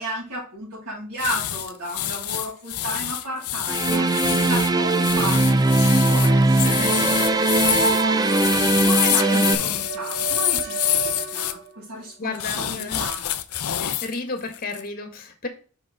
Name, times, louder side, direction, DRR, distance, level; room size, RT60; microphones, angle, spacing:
voice 1, 0.0-13.2, right 1 dB, 90° right, -9 dB, 3.4 m, -34 dB
sound 1, 1.2-11.5 12.3-14.2 14.5-14.8, left 12 dB, 85° left, 0.6 m, -26 dB
sound 2, 3.7-9.6, right 2 dB, 15° right, 0.4 m, -20 dB
sound 3, 6.7-11.8, right 4 dB, 40° right, 2.4 m, -31 dB
voice 2, 9.1-9.4 12.2-13.0 13.8-15.5, left 3 dB, 40° left, 6 dB, 1.4 m, -32 dB
5.6 x 5.3 x 3.6 m, 0.36 s
head